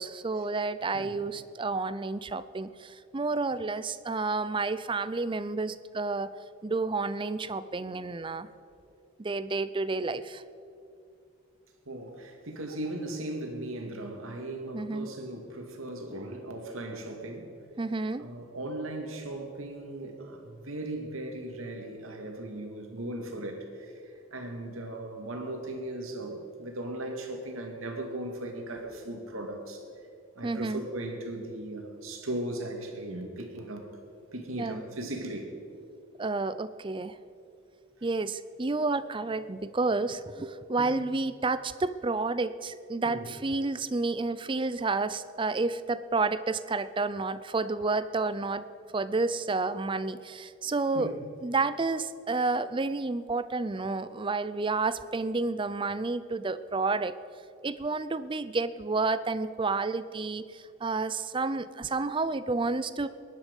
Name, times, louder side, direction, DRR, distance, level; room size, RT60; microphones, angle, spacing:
voice 1, 0.0-6.3 6.6-8.5 9.2-10.4 14.7-15.1 17.8-18.3 30.4-30.8 34.6-34.8 36.2-37.2 38.0-48.7 48.9-51.2 51.4-57.1 57.6-63.1, right 3 dB, 25° right, 14 dB, 0.5 m, -30 dB
voice 2, 11.9-17.5 18.2-24.0 24.3-29.8 30.4-33.9 34.3-35.5 40.8-40.9 43.0-43.3 50.9-51.2, right 1 dB, 85° right, 3 dB, 2.2 m, -37 dB
20.5 x 11.0 x 5.4 m, 2.5 s
head